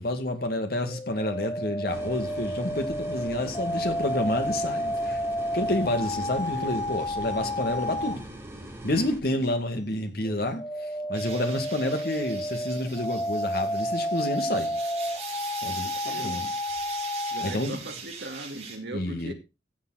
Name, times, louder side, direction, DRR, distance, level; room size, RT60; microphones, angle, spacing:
voice 1, 0.0-5.2 5.5-8.3 8.8-14.8 15.6-16.4 17.4-17.9 18.9-19.3, left 1 dB, 55° left, 2.1 m, -29 dB
sound 1, 0.9-8.2 10.3-17.6, equal, 15° left, 0.5 m, -31 dB
sound 2, 1.9-9.2, right 1 dB, 15° right, 3.5 m, -42 dB
voice 2, 5.8-6.9 9.3-9.4 15.6-16.5 17.3-19.3, right 1 dB, 60° right, 2.2 m, -40 dB
sound 3, 11.1-18.8, right 5 dB, 35° right, 4.4 m, -41 dB
15.5 x 7.4 x 4.1 m
head